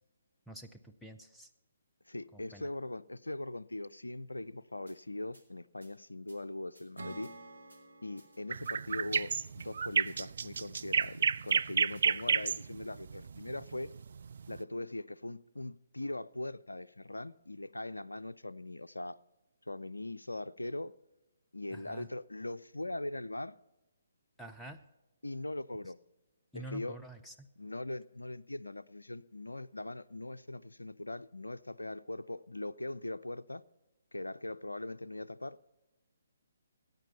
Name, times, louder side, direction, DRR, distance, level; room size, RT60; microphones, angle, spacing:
voice 1, 0.5-1.5 2.3-2.7 21.7-22.1 24.4-24.8 26.5-27.5, right 1 dB, 5° left, 0.5 m, -48 dB
voice 2, 2.1-7.3 8.0-13.9 14.5-19.2 19.7-21.0 21.5-23.5 25.2-26.0 26.5-27.0 27.6-33.6 34.1-35.6, left 2 dB, 75° left, 0.3 m, -41 dB
sound 1, 4.9-5.0 5.3-5.4 5.8-5.9 6.3-6.4 6.7-7.3 7.7-7.8 8.2-8.8 9.1-9.2 9.6-9.7 10.1-10.2 10.5-11.1 11.5-11.6 11.9-12.2, right 1 dB, 85° right, 2.8 m, -62 dB
Acoustic guitar / Strum, 7.0-10.4, right 2 dB, 70° right, 1.9 m, -51 dB
sound 2, 8.5-14.6, right 6 dB, 55° right, 0.3 m, -31 dB
15.0 x 9.2 x 5.4 m
figure-of-eight pair, 135°, 0 cm